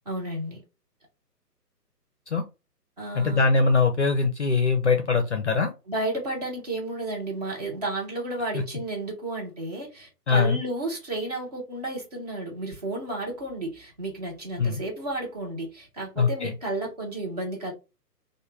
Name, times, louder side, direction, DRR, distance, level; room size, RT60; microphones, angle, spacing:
voice 1, 0.1-0.6 3.0-3.4 5.9-17.7, right 2 dB, 25° right, 0.8 m, -32 dB
voice 2, 3.1-5.7 8.5-8.6 10.3-10.6 14.6-14.8 16.2-16.5, left 4 dB, 45° left, 0.5 m, -22 dB
3.1 x 2.2 x 3.2 m
figure-of-eight pair, 145°, 49 cm